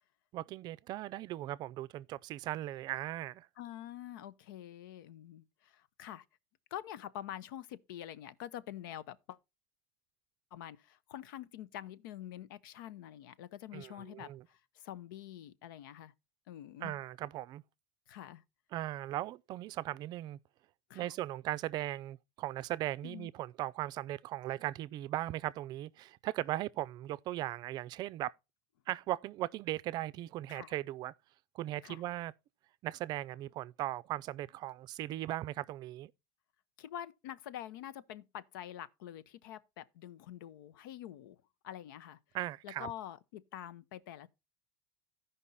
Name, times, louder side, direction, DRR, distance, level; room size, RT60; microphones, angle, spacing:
voice 1, 0.3-3.5 13.7-14.4 16.8-17.6 18.7-20.4 20.9-28.3 28.9-31.1 31.5-32.3 32.8-36.1 42.3-42.9, right 15 dB, 40° right, 0.4 m, -38 dB
voice 2, 3.6-6.2 6.7-9.4 10.5-16.1 16.5-16.9 18.1-18.4 20.9-21.1 23.0-23.3 30.5-30.7 31.8-32.0 36.8-41.4 41.6-42.2 42.6-44.3, left 11 dB, 85° left, 0.9 m, -46 dB
14.5 x 5.3 x 4.1 m
supercardioid pair, 145°, 11 cm